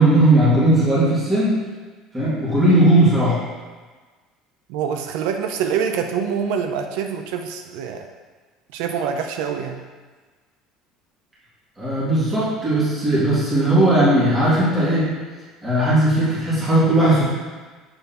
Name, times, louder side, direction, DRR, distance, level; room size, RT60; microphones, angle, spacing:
voice 1, 0.0-1.6 2.1-3.4 11.8-15.2 15.6-17.3, right 1 dB, 10° right, -11 dB, 2.3 m, -17 dB
voice 2, 4.7-8.1 8.7-9.8, right 7 dB, 80° right, 5 dB, 0.5 m, -25 dB
6.9 x 6.8 x 2.9 m, 1.4 s
cardioid pair, 150°, 0 cm